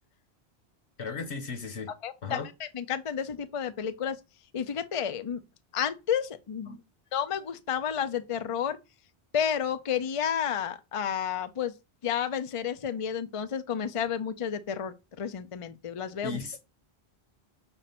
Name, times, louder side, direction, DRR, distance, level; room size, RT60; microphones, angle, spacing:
voice 1, 1.0-1.9 2.2-2.5 6.7-6.8 16.2-16.6, left 4 dB, 85° left, 1.7 m, -36 dB
voice 2, 2.0-4.2 4.5-5.4 5.7-6.8 7.1-8.8 9.3-11.7 12.0-16.4, left 8 dB, 40° left, 0.6 m, -31 dB
6.4 x 4.5 x 6.0 m
omnidirectional pair, 1.1 m